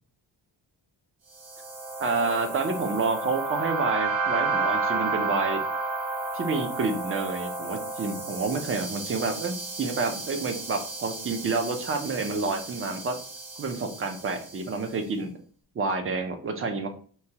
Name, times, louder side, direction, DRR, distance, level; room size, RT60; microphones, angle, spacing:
sound 1, 1.4-14.7, right 3 dB, 80° right, 1.1 m, -32 dB
voice 1, 2.0-5.6 6.3-13.2 13.6-15.3 15.8-16.9, right 4 dB, 30° right, 6 dB, 0.4 m, -29 dB
3.0 x 2.2 x 2.7 m, 0.44 s
wide cardioid pair, 165°, 46 cm